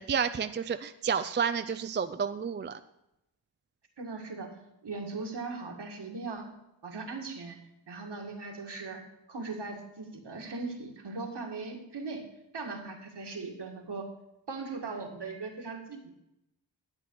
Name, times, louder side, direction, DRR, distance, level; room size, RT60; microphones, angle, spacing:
voice 1, 0.0-2.8, right 6 dB, 25° right, 10 dB, 0.4 m, -30 dB
voice 2, 4.0-4.5 4.8-6.4 6.8-7.6 7.9-9.0 9.3-12.3 12.5-14.1 14.5-16.1, right 3 dB, 60° right, 2 dB, 1.9 m, -39 dB
11.5 x 7.8 x 4.7 m, 0.87 s
wide cardioid pair, 85°, 45 cm